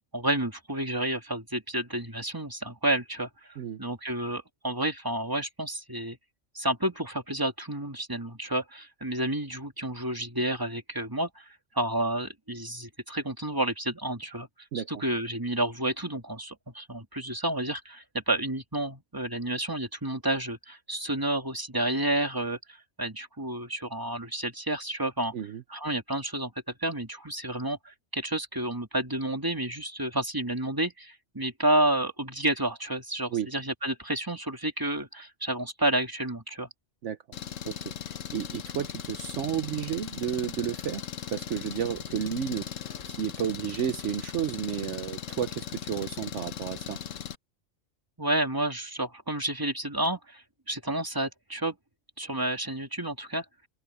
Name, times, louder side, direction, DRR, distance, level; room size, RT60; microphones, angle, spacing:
voice 1, 0.1-6.2 6.5-11.5 11.7-14.5 14.7-25.3 25.7-26.5 26.8-36.7 48.2-51.7 52.2-53.4, right 1 dB, 15° right, 2.7 m, -30 dB
voice 2, 14.7-15.0 25.3-25.6 33.3-33.5 37.0-37.2 37.6-37.8 38.3-41.0 41.3-42.7 43.1-47.0, right 9 dB, 70° right, 1.1 m, -32 dB
Engine, 37.3-47.4, left 9 dB, 80° left, 1.4 m, -38 dB
omnidirectional pair, 1.3 m